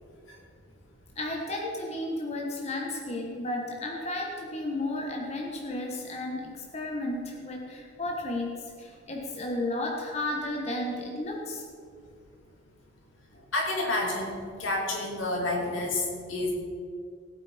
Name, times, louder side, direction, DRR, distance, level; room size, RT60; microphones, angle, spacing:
voice 1, 1.2-11.6, left 1 dB, 35° left, -1 dB, 1.4 m, -33 dB
voice 2, 13.5-16.5, left 2 dB, 85° left, -1 dB, 3.2 m, -29 dB
18.5 x 8.4 x 5.1 m, 2.3 s
head